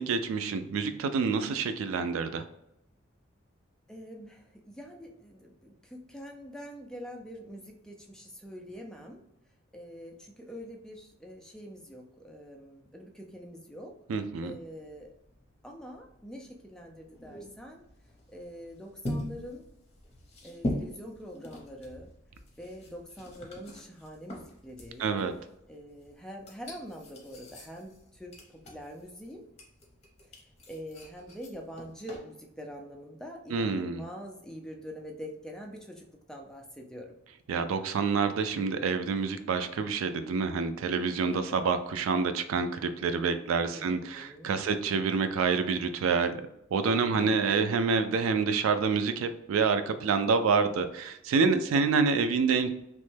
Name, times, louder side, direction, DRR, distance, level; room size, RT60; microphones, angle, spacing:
voice 1, 0.0-2.4 14.1-14.5 25.0-25.3 33.5-34.0 37.5-46.4 46.7-52.7, right 5 dB, 80° right, 9 dB, 0.3 m, -27 dB
voice 2, 3.9-9.2 9.7-13.9 14.4-15.1 15.6-17.8 18.3-19.7 20.4-22.1 22.6-25.2 25.7-28.4 28.6-29.4 30.7-37.1 41.3-41.6 43.7-44.6 46.8-47.8 51.7-52.1, equal, 5° left, 1 dB, 0.3 m, -45 dB
sound 1, 14.3-32.2, left 1 dB, 30° left, 0.8 m, -42 dB
3.0 x 2.1 x 3.2 m, 0.81 s
head